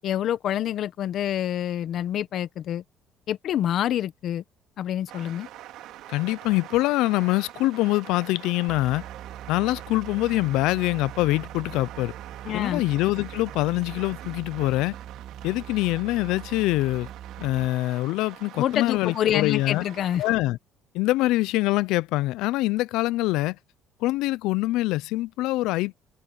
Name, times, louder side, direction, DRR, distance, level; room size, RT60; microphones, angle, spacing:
voice 1, 0.0-2.8 3.3-4.4 4.8-5.5 12.4-12.8 18.6-20.2, left 11 dB, 60° left, 1.1 m, -27 dB
sound 1, 5.1-20.4, right 13 dB, 75° right, 2.5 m, -44 dB
voice 2, 6.1-9.0 9.5-12.1 12.5-15.0 15.4-17.1 17.4-19.8 20.2-20.6 20.9-23.6 24.0-26.0, left 19 dB, 85° left, 0.5 m, -24 dB
sound 2, 8.7-17.8, right 10 dB, 50° right, 1.6 m, -42 dB
cardioid pair, 120°, 0 cm